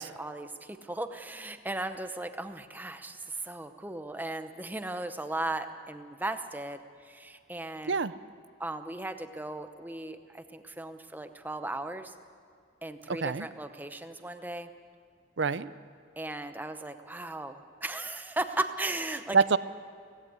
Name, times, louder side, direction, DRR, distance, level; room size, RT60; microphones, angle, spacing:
voice 1, 0.0-8.0 8.6-12.1 12.8-14.7 16.2-19.4, right 2 dB, 10° right, 9 dB, 0.8 m, -37 dB
voice 2, 13.1-13.5 15.4-15.7 19.3-19.6, right 5 dB, 60° right, 16 dB, 0.6 m, -26 dB
17.0 x 16.0 x 9.6 m, 2.3 s
head